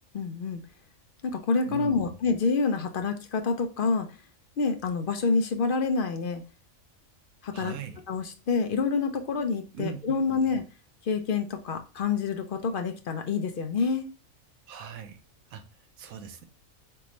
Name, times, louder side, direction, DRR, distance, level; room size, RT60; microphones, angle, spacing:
voice 1, 0.1-0.6 1.2-4.1 4.6-6.4 7.4-7.8 8.1-10.6 11.0-14.1, left 4 dB, 60° left, 6 dB, 0.5 m, -27 dB
voice 2, 1.7-2.1 7.5-8.0 9.7-10.0 10.3-10.4 14.7-15.2 15.5-15.6 16.0-16.5, right 8 dB, 90° right, 8 dB, 1.1 m, -39 dB
3.9 x 3.4 x 3.1 m, 0.33 s
omnidirectional pair, 1.4 m